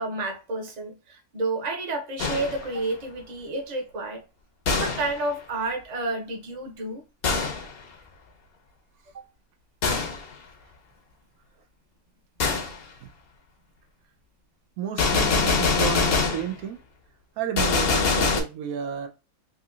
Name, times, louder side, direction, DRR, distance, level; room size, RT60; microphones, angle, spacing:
voice 1, 0.0-4.2 4.7-7.0 9.1-9.3, right 2 dB, 35° right, 0.8 m, -30 dB
Gunshot gunfire, 2.2-2.7 4.7-5.2 7.2-7.7 9.8-10.2 12.4-12.8 15.0-16.5 17.6-18.4, left 4 dB, 55° left, 0.8 m, -23 dB
voice 2, 14.8-16.8 17.4-19.1, right 8 dB, 90° right, 1.1 m, -32 dB
3.7 x 2.8 x 2.4 m
omnidirectional pair, 1.5 m